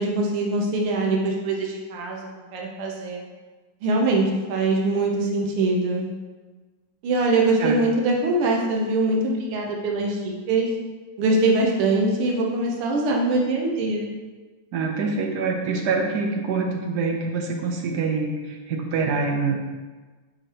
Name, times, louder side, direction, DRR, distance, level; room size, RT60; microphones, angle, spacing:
voice 1, 0.0-3.2 3.8-6.1 7.0-10.7 11.2-14.1, right 2 dB, 90° right, 0 dB, 1.8 m, -23 dB
voice 2, 14.7-18.3 18.7-19.6, right 4 dB, 60° right, 1 dB, 1.2 m, -25 dB
8.7 x 4.9 x 3.0 m, 1.3 s
omnidirectional pair, 2.3 m